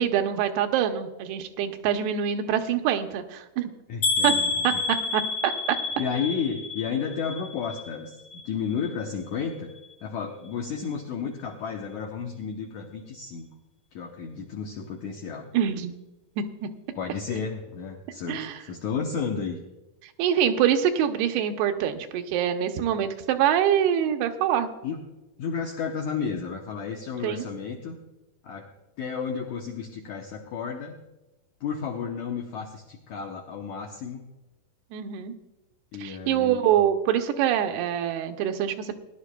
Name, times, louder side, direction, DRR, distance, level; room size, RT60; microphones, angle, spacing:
voice 1, 0.0-3.7 4.2-4.3 4.6-4.7 5.1-5.8 15.5-16.0 16.4-16.7 18.3-18.6 20.2-24.7 27.2-27.5 34.9-35.3 36.0-39.0, right 9 dB, 90° right, 6 dB, 2.8 m, -25 dB
voice 2, 3.9-4.8 6.0-9.7 10.0-13.5 13.9-15.5 16.9-19.6 24.8-25.0 25.4-28.0 28.4-28.7 29.0-30.9 31.6-34.2 35.9-36.7, left 6 dB, 80° left, 1 dB, 1.7 m, -32 dB
sound 1, 4.0-8.0 8.3-8.9 9.4-9.5 9.8-9.9, left 4 dB, 60° left, 2.2 m, -29 dB
20.0 x 11.0 x 2.2 m, 1.1 s
omnidirectional pair, 4.5 m